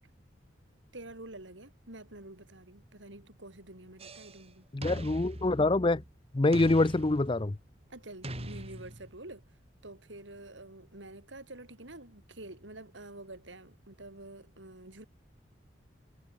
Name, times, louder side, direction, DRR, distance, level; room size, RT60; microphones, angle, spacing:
voice 1, 0.9-4.7 7.9-9.4 9.8-15.0, right 2 dB, 85° right, 4.8 m, -48 dB
sound 1, 4.0-4.4 4.8-6.1 6.5-7.6 8.2-9.3, right 1 dB, 35° right, 5.3 m, -41 dB
voice 2, 4.7-6.0 6.3-7.6, left 2 dB, 25° left, 0.6 m, -25 dB
head